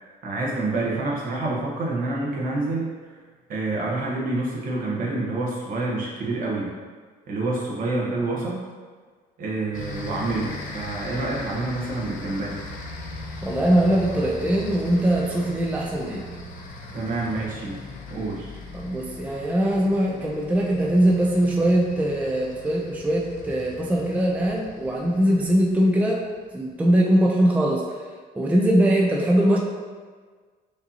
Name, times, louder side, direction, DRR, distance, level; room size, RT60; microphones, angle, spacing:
voice 1, 0.2-2.9 3.5-6.7 7.3-8.6 9.4-12.7 16.9-17.7 18.1-18.5, right 2 dB, 55° right, -3 dB, 1.0 m, -27 dB
sound 1, 9.7-26.5, left 2 dB, 50° left, 0.7 m, -39 dB
voice 2, 13.4-16.3 18.7-26.3 26.5-28.0 28.3-29.6, right 1 dB, 10° right, -2 dB, 0.4 m, -21 dB
5.0 x 2.7 x 2.8 m, 1.5 s
cardioid pair, 110°, 17 cm